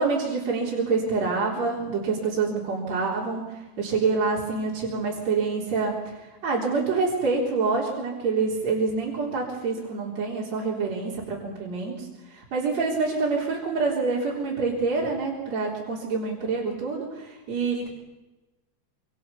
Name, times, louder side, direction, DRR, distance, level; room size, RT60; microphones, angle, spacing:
voice 1, 0.0-6.2 6.4-17.9, right 4 dB, 45° right, -3 dB, 4.8 m, -26 dB
27.5 x 25.5 x 7.1 m, 1.1 s
omnidirectional pair, 4.5 m